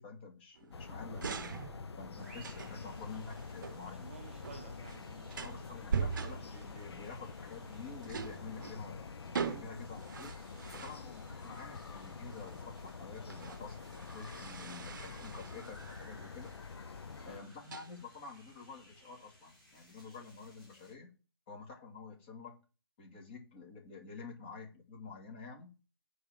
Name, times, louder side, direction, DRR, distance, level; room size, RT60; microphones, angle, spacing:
voice 1, 0.0-1.6 2.0-4.1 5.3-10.3 10.7-16.5 17.3-21.1 21.5-22.6 23.0-25.7, left 4 dB, 25° left, 2.7 m, -49 dB
sound 1, 0.6-19.0, right 6 dB, 50° right, 0.8 m, -44 dB
sound 2, 0.7-17.4, left 5 dB, 75° left, 0.8 m, -47 dB
sound 3, 2.2-20.9, equal, ahead, 2.7 m, -62 dB
voice 2, 2.2-2.5 3.9-6.0 17.2-17.5, right 7 dB, 25° right, 0.5 m, -54 dB
9.4 x 4.3 x 7.1 m
hypercardioid pair, 170°, 14 cm